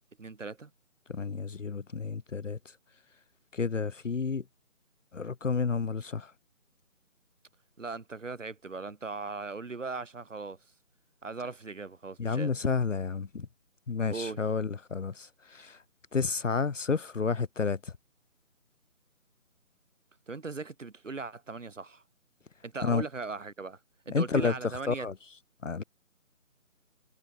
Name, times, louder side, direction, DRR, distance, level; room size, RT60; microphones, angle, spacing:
voice 1, 0.2-0.7 7.8-10.6 11.2-12.5 14.1-14.4 20.3-22.0 22.6-23.8 24.1-25.1, right 4 dB, 60° right, 2.2 m, -38 dB
voice 2, 1.1-2.8 3.5-4.4 5.1-6.3 12.2-13.5 13.9-15.8 16.1-18.0 22.8-23.0 24.1-24.6 24.9-25.1 25.6-25.8, left 5 dB, 60° left, 0.9 m, -30 dB
figure-of-eight pair, 160°, 43 cm